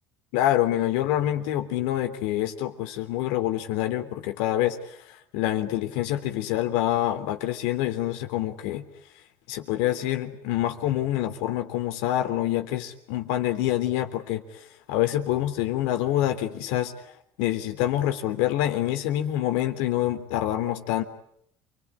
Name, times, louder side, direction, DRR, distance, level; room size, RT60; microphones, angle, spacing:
voice 1, 0.3-4.8 5.3-8.8 9.5-14.6 14.9-16.9 17.4-21.0, left 13 dB, 90° left, 7 dB, 3.3 m, -26 dB
29.0 x 21.0 x 9.8 m, 0.71 s
cardioid pair, 110°, 10 cm